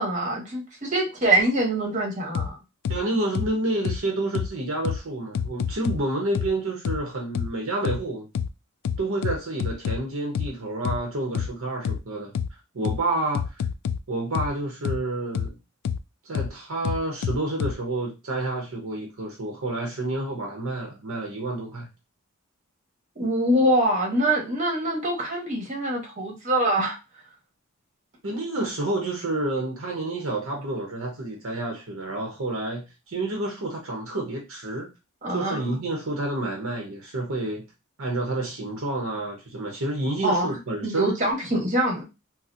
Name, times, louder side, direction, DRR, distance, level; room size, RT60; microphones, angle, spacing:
voice 1, 0.0-2.6 23.1-27.0 35.2-35.8 40.2-40.6 40.8-42.0, right 1 dB, 35° right, 1.2 m, -24 dB
sound 1, 2.3-2.5 2.8-3.0 3.3-3.5 3.8-4.0 4.3-4.5 4.8-5.0 5.3-6.0 6.3-6.5 6.8-7.0 7.3-7.5 7.8-8.0 8.3-8.5 8.8-10.0 10.3-10.5 10.8-11.0 11.3-11.5 11.8-12.0 12.3-12.5 12.8-13.0 13.3-14.0 14.3-14.5 14.8-15.0 15.3-15.5 15.8-16.0 16.3-16.5 16.8-17.7, left 7 dB, 80° left, 0.3 m, -27 dB
voice 2, 2.9-8.3 9.0-12.3 12.7-13.6 14.1-15.6 16.2-21.9 28.2-34.9 35.3-37.7 38.0-41.1, right 2 dB, 65° right, 0.8 m, -29 dB
4.2 x 2.1 x 2.5 m
head